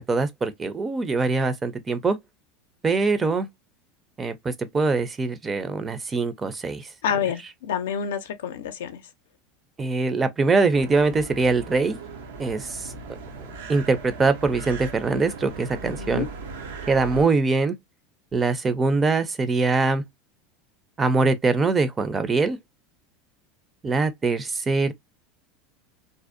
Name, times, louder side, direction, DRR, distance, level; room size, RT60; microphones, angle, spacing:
voice 1, 0.0-2.2 2.8-3.5 4.2-6.9 9.8-12.0 12.4-12.9 13.7-16.3 16.9-17.8 18.3-20.0 21.0-22.6 23.8-24.9, right 3 dB, 20° right, 0.4 m, -23 dB
voice 2, 7.0-9.0 15.8-16.3, left 8 dB, 90° left, 0.4 m, -28 dB
sound 1, 10.7-17.2, right 4 dB, 90° right, 0.5 m, -38 dB
2.6 x 2.0 x 2.4 m
supercardioid pair, 115°, 0 cm